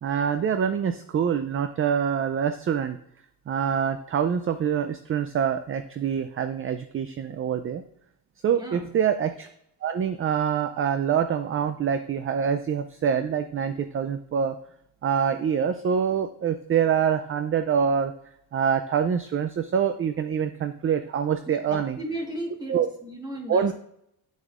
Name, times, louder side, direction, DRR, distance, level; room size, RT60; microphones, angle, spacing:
voice 1, 0.0-3.0 3.5-7.8 8.4-9.5 9.8-14.6 15.0-18.1 18.5-22.0 22.7-22.9 23.5-23.7, right 7 dB, 35° right, 9 dB, 0.4 m, -25 dB
voice 2, 8.6-8.9 21.7-23.7, right 1 dB, 10° right, 1 dB, 1.5 m, -35 dB
9.2 x 7.8 x 2.5 m, 0.74 s
cardioid pair, 125°, 38 cm